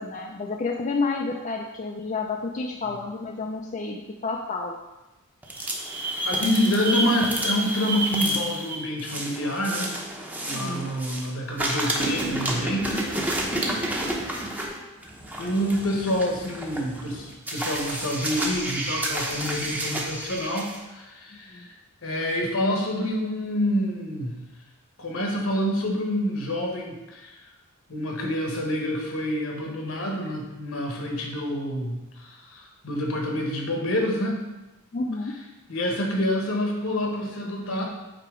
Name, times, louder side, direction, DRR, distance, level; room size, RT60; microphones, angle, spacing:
voice 1, 0.0-4.8 10.5-10.9 21.5-21.7 34.9-35.4, left 3 dB, 35° left, 1 dB, 0.4 m, -30 dB
sound 1, 5.4-11.3 11.6-20.8, right 1 dB, 10° right, 0.7 m, -30 dB
voice 2, 6.2-9.9 10.4-13.1 15.4-21.7 22.0-24.4 25.0-27.5 27.9-34.4 35.7-37.8, equal, 70° left, 1 dB, 1.3 m, -27 dB
7.7 x 2.9 x 4.8 m, 1.0 s
head